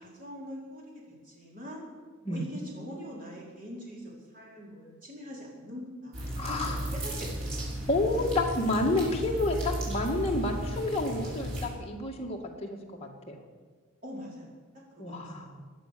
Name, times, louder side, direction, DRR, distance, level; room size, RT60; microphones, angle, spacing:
voice 1, 0.0-1.8 2.3-7.4 14.0-14.5 14.9-15.5, equal, 40° right, -4 dB, 4.7 m, -43 dB
sound 1, 6.1-11.7, right 1 dB, 85° right, 6.2 m, -35 dB
voice 2, 6.4-6.8 7.9-13.4 15.0-15.6, left 2 dB, 30° left, 0 dB, 2.0 m, -30 dB
17.5 x 10.5 x 6.9 m, 1.5 s
head